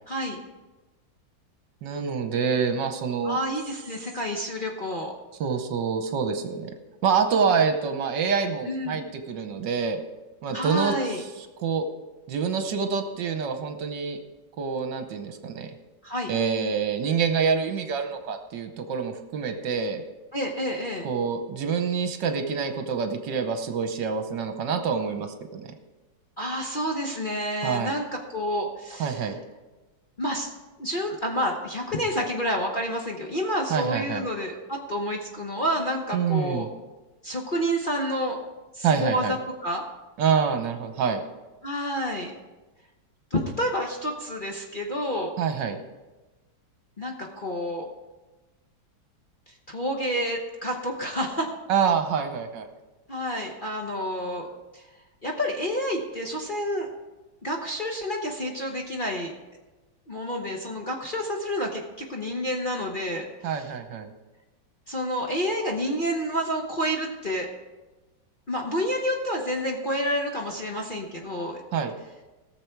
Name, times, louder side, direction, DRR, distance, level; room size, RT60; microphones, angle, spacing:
voice 1, 0.1-0.4 3.2-5.1 8.7-9.0 10.5-11.2 16.0-16.3 20.3-21.1 26.4-29.3 30.2-30.5 30.8-36.7 37.2-38.4 38.7-39.4 39.6-39.8 41.6-42.3 43.3-45.3 47.0-47.9 49.7-51.5 53.1-54.5 54.7-54.9 55.2-56.9 57.4-59.3 60.1-63.5 64.9-67.5 68.5-71.6, equal, 35° left, 0 dB, 0.9 m, -29 dB
voice 2, 1.8-3.4 5.4-6.7 7.0-10.0 10.4-10.9 11.6-11.8 12.3-14.2 14.6-15.7 16.3-20.0 21.0-25.7 27.6-27.9 29.0-29.4 33.7-34.3 36.1-36.7 38.8-39.3 40.2-41.2 45.4-45.8 51.7-52.7 63.4-64.1 71.7-71.9, right 6 dB, 70° right, 7 dB, 1.5 m, -26 dB
18.0 x 6.9 x 4.6 m, 1.1 s
omnidirectional pair, 2.1 m